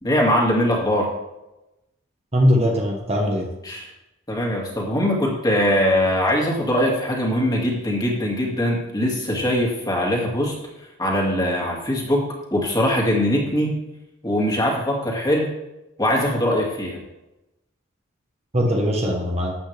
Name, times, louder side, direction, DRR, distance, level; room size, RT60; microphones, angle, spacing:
voice 1, 0.0-1.1 3.7-3.9 4.3-10.5 11.0-12.2 12.5-13.7 14.2-15.5 16.0-17.0, equal, 20° left, -2 dB, 2.3 m, -21 dB
voice 2, 2.3-3.5 18.5-19.5, equal, 30° right, 0 dB, 1.4 m, -20 dB
12.5 x 8.5 x 3.5 m, 0.93 s
head